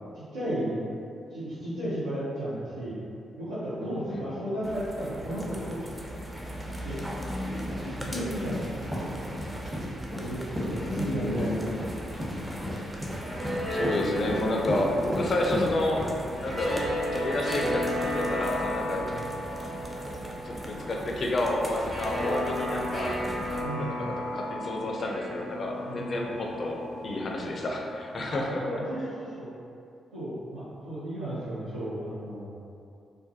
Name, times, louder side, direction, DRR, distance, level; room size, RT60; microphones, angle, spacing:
voice 1, 0.1-0.8 1.3-3.0 3.4-6.2 6.4-6.9 7.2-9.1 10.2-11.5 12.3-12.6 18.9-19.2 23.6-24.0 25.8-26.1 28.3-29.5 30.1-32.5, right 1 dB, 90° right, -15 dB, 0.6 m, -35 dB
sound 1, 4.6-23.6, equal, 10° right, 0.4 m, -39 dB
sound 2, 7.5-16.7, left 1 dB, 30° right, 0.8 m, -35 dB
voice 2, 8.1-8.6 10.7-11.7 13.7-16.1 16.4-16.9 17.1-19.1 19.3-19.4 20.4-23.2 23.5-28.6, left 1 dB, 50° left, 0 dB, 0.4 m, -30 dB
sound 3, 12.9-28.1, equal, 50° right, 1.1 m, -34 dB
2.3 x 2.2 x 2.6 m, 2.4 s
hypercardioid pair, 40°, 0 cm